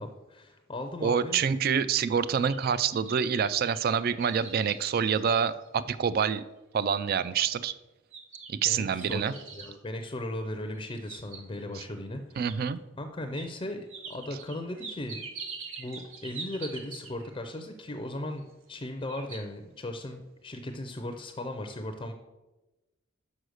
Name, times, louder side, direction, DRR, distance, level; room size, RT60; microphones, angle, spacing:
voice 1, 0.0-1.4 8.6-12.7 13.0-15.2 15.8-22.1, left 1 dB, 25° left, 6 dB, 0.5 m, -37 dB
voice 2, 1.0-6.5 6.7-7.7 8.5-9.3 11.7-11.8 12.4-12.8, right 7 dB, 50° right, 15 dB, 0.3 m, -27 dB
sound 1, 2.5-5.8 6.3-6.4 6.9-7.3 8.1-9.8 10.7-11.7 12.5-12.6 13.3-13.5 13.9-17.3 18.4-18.8 19.1-19.4, right 5 dB, 75° right, 1.2 m, -44 dB
6.3 x 5.4 x 6.4 m, 1.1 s
head